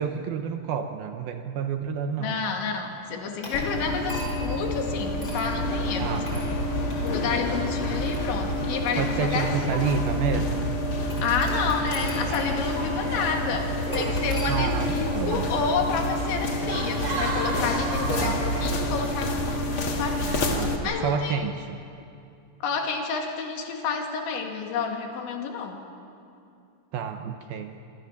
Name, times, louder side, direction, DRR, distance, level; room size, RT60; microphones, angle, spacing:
voice 1, 0.0-2.5 6.0-6.6 9.0-10.7 14.5-15.5 18.1-18.4 20.5-21.9 26.9-27.8, right 6 dB, 75° right, 6 dB, 2.3 m, -29 dB
voice 2, 2.2-6.2 7.0-9.7 11.2-19.4 19.8-20.4 20.8-21.4 22.6-25.8, left 5 dB, 75° left, 3 dB, 4.4 m, -30 dB
sound 1, 3.4-4.6 5.2-5.5 6.3-6.5 6.9-7.1 7.8-9.0 9.7-9.8 11.1-12.5 12.8-12.9 13.9-14.5, left 1 dB, 20° left, 5.6 m, -40 dB
sound 2, 3.5-20.8, left 1 dB, 55° left, 1.5 m, -28 dB
sound 3, 12.0-20.6, right 2 dB, 40° right, 5.2 m, -36 dB
26.5 x 25.5 x 7.2 m, 2.5 s
omnidirectional pair, 5.4 m